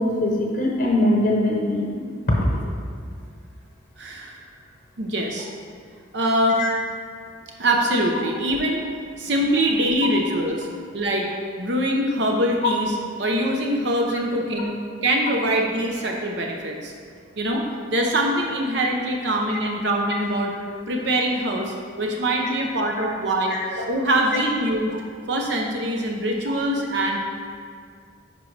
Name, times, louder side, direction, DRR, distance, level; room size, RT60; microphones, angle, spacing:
voice 1, 0.0-1.9 2.3-2.6 6.6-6.7 23.5-23.6, left 1 dB, 50° left, -2 dB, 0.8 m, -21 dB
voice 2, 4.0-4.4 5.0-5.5 6.1-6.6 7.6-8.8 9.2-10.7 10.9-14.7 15.0-16.9 17.4-20.5 20.9-24.9 25.3-27.2, right 1 dB, 60° right, 0 dB, 0.7 m, -23 dB
9.6 x 5.2 x 3.3 m, 2.1 s
head